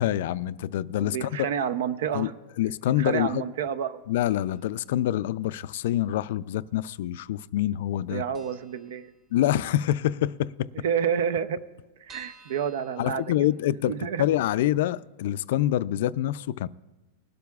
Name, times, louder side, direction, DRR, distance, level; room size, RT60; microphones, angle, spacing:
voice 1, 0.0-1.5 2.1-2.3 2.6-3.4 4.1-8.2 9.3-10.7 13.0-13.9 14.2-16.7, left 13 dB, 65° left, 0.3 m, -26 dB
voice 2, 1.0-2.3 3.0-4.0 8.1-9.1 10.8-11.6 12.0-13.2 13.9-14.3, right 8 dB, 75° right, 0.6 m, -29 dB
sound 1, 4.3-4.8 5.1-5.2 6.1-6.8 7.1-7.2 7.5-7.6 8.0-8.1 8.3-9.7 10.0-10.1 10.4-10.5 10.7-10.8 11.3-13.9 14.4-14.5 14.8-14.9, right 5 dB, 25° right, 1.8 m, -54 dB
20.5 x 12.0 x 2.4 m
supercardioid pair, 165°, 0 cm